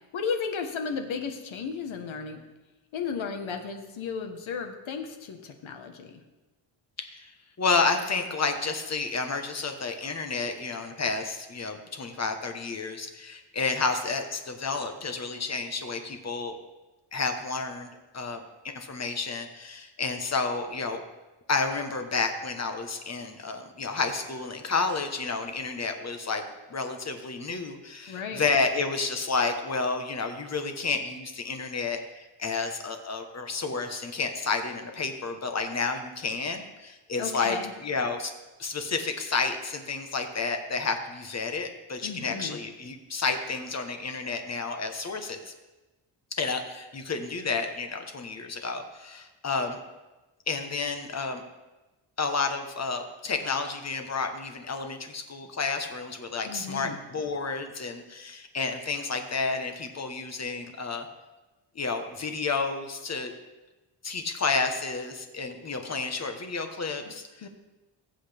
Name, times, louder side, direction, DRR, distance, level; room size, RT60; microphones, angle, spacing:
voice 1, 0.1-2.4 2.9-6.2 28.1-28.4 37.2-37.7 42.0-42.6 56.4-57.0 67.4-67.5, left 5 dB, 75° left, 5 dB, 1.5 m, -34 dB
voice 2, 7.0-7.3 7.6-16.5 17.1-17.9 18.1-21.0 21.5-26.4 26.7-38.3 38.6-45.5 46.4-49.8 50.5-51.4 52.2-61.1 61.7-63.3 64.0-67.5, left 4 dB, 35° left, 5 dB, 1.3 m, -30 dB
21.0 x 8.2 x 3.5 m, 1.1 s
wide cardioid pair, 155°, 48 cm